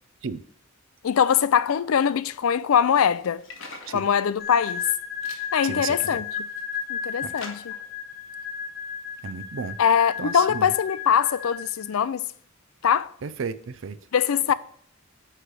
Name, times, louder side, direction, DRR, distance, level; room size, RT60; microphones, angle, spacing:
voice 1, 1.0-3.4 3.9-4.8 5.5-6.3 6.9-7.7 9.8-12.3 12.8-13.1 14.1-14.5, left 8 dB, 85° left, 0.4 m, -22 dB
sound 1, 3.0-4.0 4.5-4.9 5.2-5.5 6.1-6.8 7.4-7.9, left 4 dB, 65° left, 1.5 m, -43 dB
sound 2, 4.4-12.0, left 7 dB, 45° left, 0.8 m, -34 dB
voice 2, 5.6-6.2 7.2-7.3 9.2-9.8 10.2-10.7 13.2-14.0, right 5 dB, 65° right, 0.5 m, -33 dB
9.9 x 3.3 x 6.1 m
head